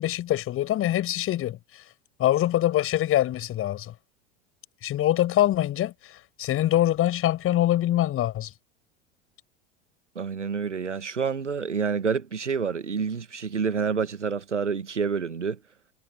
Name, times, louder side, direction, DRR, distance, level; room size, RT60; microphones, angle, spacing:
voice 1, 0.0-1.6 2.2-3.9 4.8-5.9 6.4-8.5, left 13 dB, 40° left, 6.5 m, -24 dB
voice 2, 10.1-15.6, right 6 dB, 90° right, 1.6 m, -28 dB
figure-of-eight pair, 85°, 35 cm